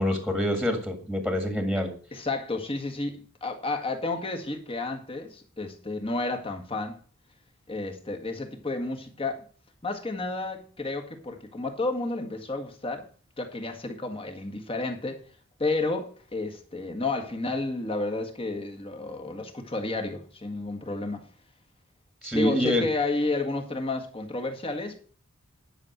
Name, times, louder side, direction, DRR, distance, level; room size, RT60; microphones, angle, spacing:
voice 1, 0.0-1.9 22.2-22.9, equal, ahead, 1.8 m, -26 dB
voice 2, 2.1-7.0 7.7-9.5 9.8-13.0 13.4-15.2 15.6-21.3 22.3-25.0, left 2 dB, 25° left, 1.7 m, -31 dB
11.0 x 6.3 x 7.9 m
head